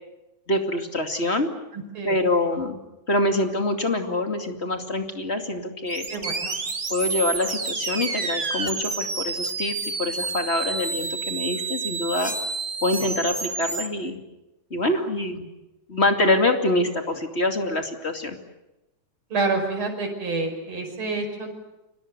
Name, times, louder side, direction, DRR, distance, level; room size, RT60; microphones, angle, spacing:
voice 1, 0.5-1.5 2.0-2.8 3.1-6.1 6.9-12.3 12.8-14.2 14.7-15.4 15.9-18.4, left 1 dB, 20° left, 5 dB, 2.5 m, -25 dB
voice 2, 1.7-2.2 6.1-6.6 19.3-21.5, right 3 dB, 40° right, 3 dB, 6.2 m, -28 dB
sound 1, 5.9-13.9, right 4 dB, 25° right, 1.5 m, -29 dB
30.0 x 25.5 x 6.8 m, 0.97 s
omnidirectional pair, 3.5 m